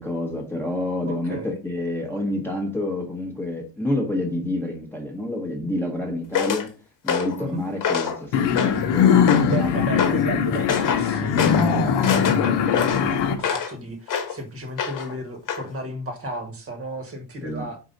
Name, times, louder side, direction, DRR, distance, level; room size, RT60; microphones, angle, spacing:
voice 1, 0.0-6.8 7.0-9.9 17.4-17.6, left 1 dB, 5° left, -2 dB, 0.9 m, -28 dB
voice 2, 1.1-1.6 7.4-7.6 9.3-17.8, right 1 dB, 30° right, 5 dB, 1.1 m, -34 dB
sound 1, 6.3-6.7 7.1-7.4 7.8-8.2 8.6-8.9 9.3-9.6 10.0-10.2 10.7-11.1 11.4-11.7 12.0-13.7 14.1-14.4 14.8-15.1 15.5-15.7, left 7 dB, 45° left, 1.1 m, -25 dB
sound 2, 8.3-13.4, left 7 dB, 75° left, 1.0 m, -21 dB
4.7 x 3.8 x 5.1 m, 0.35 s
cardioid pair, 170°, 43 cm